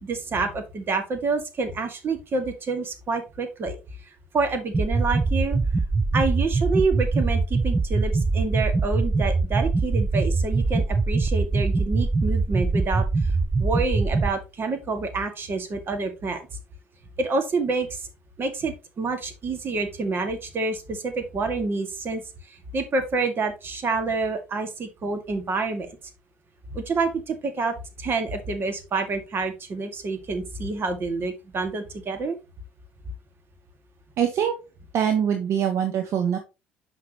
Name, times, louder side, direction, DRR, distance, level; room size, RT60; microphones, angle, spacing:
voice 1, 0.0-3.8 4.3-5.6 6.1-13.1 13.6-16.4 17.2-18.0 18.4-22.2 22.7-25.9 26.7-32.4, right 3 dB, 40° right, 7 dB, 1.9 m, -27 dB
sound 1, 4.7-14.3, right 3 dB, 15° right, 0.6 m, -23 dB
voice 2, 34.2-34.5 34.9-36.4, right 8 dB, 55° right, 6 dB, 1.2 m, -23 dB
7.2 x 6.0 x 2.9 m, 0.26 s
hypercardioid pair, 70°, 6 cm